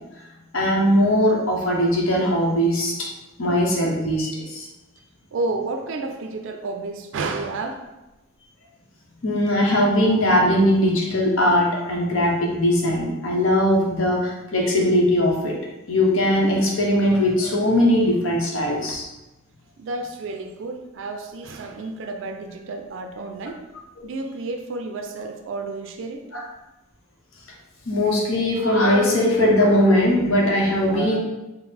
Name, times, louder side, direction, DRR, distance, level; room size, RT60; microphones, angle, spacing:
voice 1, 0.5-2.9 3.4-4.7 9.2-15.5 15.9-19.0 26.3-26.4 27.9-31.2, left 1 dB, 75° left, -2 dB, 0.9 m, -20 dB
voice 2, 5.3-7.8 19.8-23.6 24.0-26.2, right 3 dB, 65° right, 4 dB, 0.4 m, -31 dB
3.8 x 2.0 x 4.1 m, 1.0 s
head